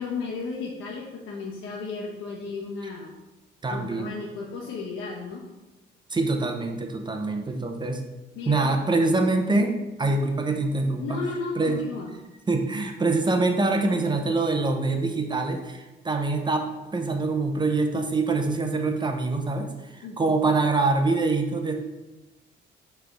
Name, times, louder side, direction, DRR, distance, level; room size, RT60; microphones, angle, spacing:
voice 1, 0.0-3.1 3.7-5.5 8.3-8.8 11.0-12.1 20.0-20.4, left 4 dB, 85° left, -5 dB, 1.0 m, -34 dB
voice 2, 3.6-4.1 6.1-8.0 8.5-11.2 11.6-11.8 12.5-21.7, right 3 dB, 20° right, 4 dB, 0.8 m, -25 dB
5.8 x 3.4 x 4.8 m, 1.1 s
cardioid pair, 90°, 20 cm